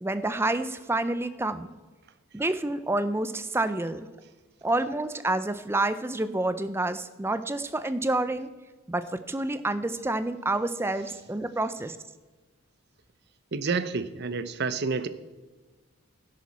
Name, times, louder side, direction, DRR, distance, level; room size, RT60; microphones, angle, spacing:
voice 1, 0.0-1.7 2.3-4.1 4.6-8.5 8.9-12.0, right 2 dB, 10° right, 12 dB, 0.4 m, -28 dB
voice 2, 13.5-15.1, right 4 dB, 50° right, 13 dB, 0.6 m, -29 dB
12.5 x 10.5 x 4.2 m, 1.3 s
head